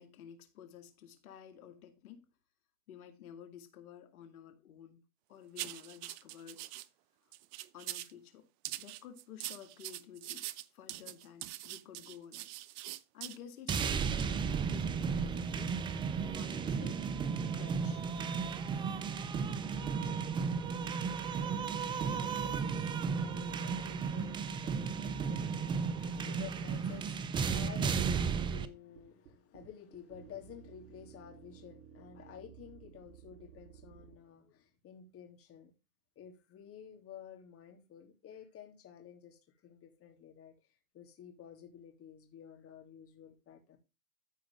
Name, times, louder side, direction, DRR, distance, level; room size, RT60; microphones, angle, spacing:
voice 1, 0.0-2.2 2.9-5.0 5.3-6.6 7.7-8.5 8.8-10.5 10.7-12.5 13.1-15.8 16.3-17.0 17.5-18.1, left 9 dB, 75° left, 2.5 m, -52 dB
sound 1, 5.6-6.9 7.3-8.1 8.6-13.4 13.7-13.8 14.2-14.3, right 16 dB, 45° right, 0.7 m, -43 dB
sound 2, 13.7-28.7, right 6 dB, 10° right, 0.4 m, -34 dB
voice 2, 21.3-22.7 23.1-35.7 36.1-40.5 40.9-43.8, left 8 dB, 30° left, 3.0 m, -52 dB
sound 3, 28.7-34.2, right 9 dB, 70° right, 3.4 m, -56 dB
14.0 x 4.8 x 3.6 m
hypercardioid pair, 120°, 43 cm